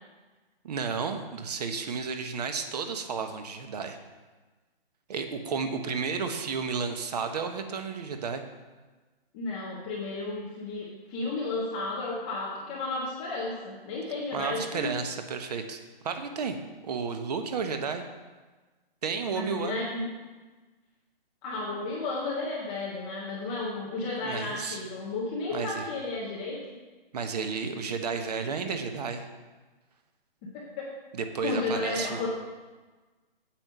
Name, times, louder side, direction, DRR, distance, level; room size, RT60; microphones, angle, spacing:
voice 1, 0.6-4.0 5.1-8.4 14.3-16.6 16.8-18.0 19.0-19.8 24.2-24.8 25.5-25.9 27.1-29.3 31.1-32.2, right 5 dB, 45° right, 7 dB, 1.1 m, -32 dB
voice 2, 9.3-14.9 19.3-20.0 21.4-26.6 30.4-30.5 30.8-30.9 31.4-32.3, left 3 dB, 5° left, -5 dB, 0.5 m, -33 dB
8.9 x 7.7 x 5.5 m, 1.3 s
hypercardioid pair, 155°, 30 cm